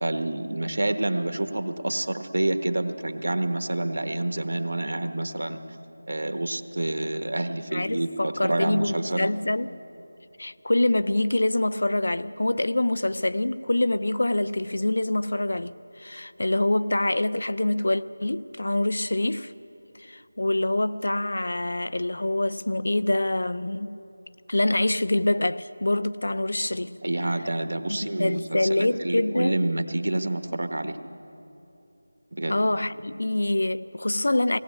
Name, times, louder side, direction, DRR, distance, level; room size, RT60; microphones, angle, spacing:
voice 1, 0.0-5.6 6.1-9.3 27.0-31.0 32.3-32.5, right 1 dB, 70° right, 1.2 m, -28 dB
voice 2, 7.7-9.7 10.4-19.5 20.0-24.0 24.5-27.0 27.9-29.6 32.5-34.6, left 1 dB, 70° left, 0.6 m, -25 dB
18.0 x 18.0 x 8.4 m
figure-of-eight pair, 175°, 0 cm